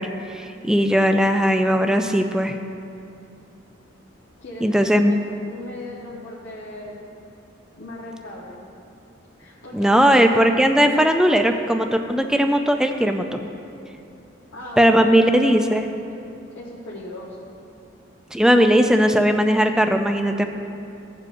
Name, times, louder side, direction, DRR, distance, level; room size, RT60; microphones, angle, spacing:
voice 1, 0.0-2.5 4.6-5.2 9.7-13.3 14.8-15.8 18.3-20.4, equal, 5° right, 5 dB, 0.4 m, -18 dB
voice 2, 4.4-7.1 7.8-8.6 9.4-10.5 14.5-15.8 16.5-17.5, left 1 dB, 70° left, -7 dB, 1.1 m, -38 dB
15.5 x 7.5 x 2.6 m, 2.6 s
head